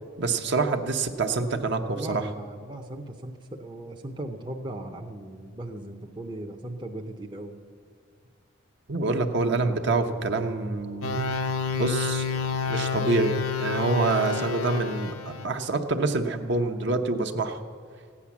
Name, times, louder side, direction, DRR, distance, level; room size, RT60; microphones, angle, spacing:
voice 1, 0.2-2.2 8.9-11.2 11.7-12.3 12.7-15.1 15.4-17.6, right 3 dB, 55° right, 5 dB, 0.9 m, -26 dB
voice 2, 2.0-7.6, right 1 dB, 20° right, 2 dB, 0.7 m, -38 dB
sound 1, 11.0-15.5, left 5 dB, 80° left, 0.9 m, -29 dB
16.0 x 9.9 x 7.2 m, 2.3 s
head